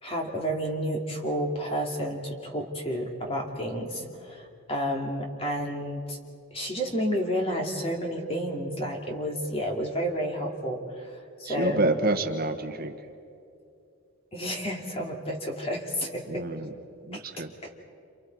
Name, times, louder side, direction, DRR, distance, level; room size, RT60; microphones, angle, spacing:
voice 1, 0.0-6.2 6.5-11.8 14.3-16.4 17.1-17.2 17.6-17.7, equal, 25° left, 1 dB, 2.7 m, -31 dB
voice 2, 11.4-12.9 16.3-16.7 17.0-17.5, right 2 dB, 45° right, 5 dB, 1.3 m, -28 dB
29.0 x 28.5 x 4.7 m, 2.5 s
head